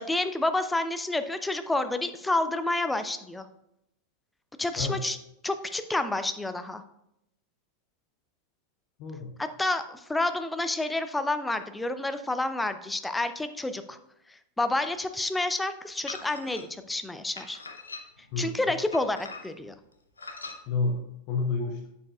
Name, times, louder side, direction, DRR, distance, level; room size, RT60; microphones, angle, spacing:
voice 1, 0.0-3.5 4.6-5.2 5.4-6.8 9.4-14.0 14.3-17.6 18.4-19.7, left 2 dB, 5° left, 9 dB, 0.5 m, -29 dB
voice 2, 9.0-9.3 18.3-18.7 20.7-21.0 21.3-21.9, left 4 dB, 45° left, 3 dB, 0.8 m, -29 dB
sound 1, 16.1-16.6 17.4-18.3 18.9-19.7 20.2-20.6, left 3 dB, 75° left, 0.8 m, -41 dB
8.5 x 6.9 x 2.4 m, 0.81 s
figure-of-eight pair, 90°, 0 cm